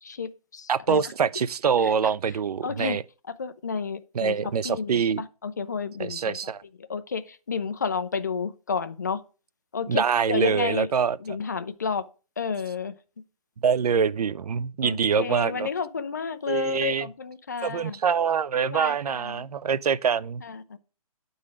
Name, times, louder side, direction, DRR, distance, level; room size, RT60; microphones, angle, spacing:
voice 1, 0.0-1.1 1.8-3.0 3.2-9.2 9.7-10.9 11.2-12.1 12.4-13.0 14.8-18.0 18.5-19.5 20.4-20.8, left 5 dB, 30° left, 0.4 m, -32 dB
voice 2, 0.7-3.0 4.2-5.2 6.0-6.6 9.9-11.2 13.6-15.7 16.5-17.1 17.6-20.4, right 6 dB, 90° right, 0.5 m, -25 dB
9.5 x 3.9 x 4.8 m
hypercardioid pair, 170°, 19 cm